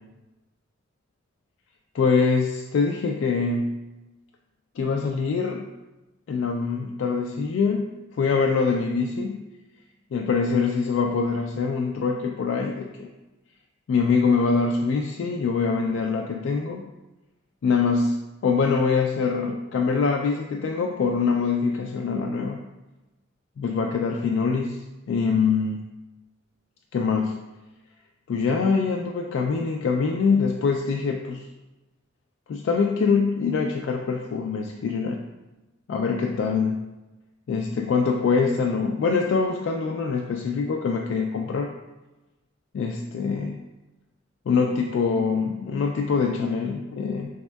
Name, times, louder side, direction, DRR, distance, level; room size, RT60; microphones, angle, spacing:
voice 1, 1.9-3.7 4.8-5.7 6.3-7.9 8.2-9.4 10.1-13.1 13.9-16.9 17.6-18.2 18.4-22.6 23.6-24.8 25.1-25.8 26.9-27.4 28.3-31.4 32.5-35.2 35.9-36.8 37.5-41.7 42.7-43.6 44.5-47.3, left 5 dB, 70° left, 2 dB, 0.3 m, -24 dB
5.2 x 3.5 x 2.2 m, 1.1 s
head